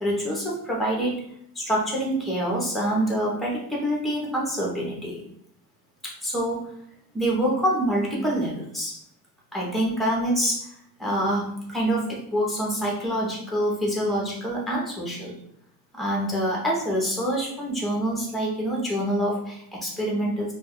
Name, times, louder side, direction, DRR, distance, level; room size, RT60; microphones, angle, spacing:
voice 1, 0.0-1.2 1.5-5.2 6.0-6.7 7.1-9.0 9.5-10.7 11.0-15.3 15.9-20.5, equal, ahead, -3 dB, 0.6 m, -26 dB
2.3 x 2.3 x 3.5 m, 0.70 s
cardioid pair, 170°, 36 cm